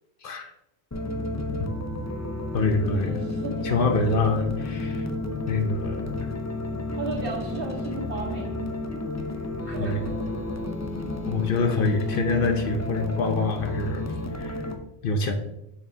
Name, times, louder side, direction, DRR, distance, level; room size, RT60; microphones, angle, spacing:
voice 1, 0.2-0.5 1.6-1.7 2.5-3.2 3.6-5.1 5.5-6.3 9.8-10.1 11.3-14.7 15.0-15.3, left 3 dB, 60° left, 5 dB, 0.8 m, -26 dB
sound 1, 0.9-14.7, left 2 dB, 25° left, 0.4 m, -31 dB
voice 2, 2.9-4.5 7.0-8.7 9.6-10.1, right 4 dB, 55° right, -2 dB, 1.8 m, -35 dB
7.0 x 6.4 x 2.7 m, 0.85 s
omnidirectional pair, 1.1 m